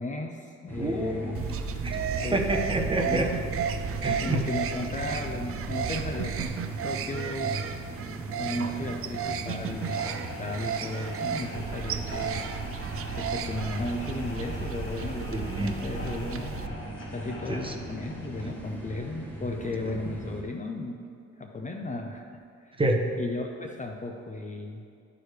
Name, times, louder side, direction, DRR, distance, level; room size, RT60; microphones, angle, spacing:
voice 1, 0.0-1.4 2.2-2.4 3.1-3.3 4.2-7.6 8.4-12.4 13.2-16.6 17.1-21.0 21.4-22.2 22.6-22.7 23.2-24.8, left 2 dB, 25° left, 3 dB, 0.6 m, -35 dB
sound 1, 0.7-20.4, right 1 dB, 5° left, 1.6 m, -40 dB
voice 2, 0.8-1.5 1.8-2.0 2.3-3.3 4.0-4.4 15.3-15.9 17.5-17.7 22.8-23.2, right 1 dB, 15° right, 2 dB, 0.9 m, -28 dB
sound 2, 1.3-16.7, right 7 dB, 50° right, 0.5 m, -33 dB
sound 3, 9.7-18.6, left 1 dB, 40° left, 1.6 m, -44 dB
13.0 x 4.8 x 3.3 m, 2.4 s
cardioid pair, 90°, 30 cm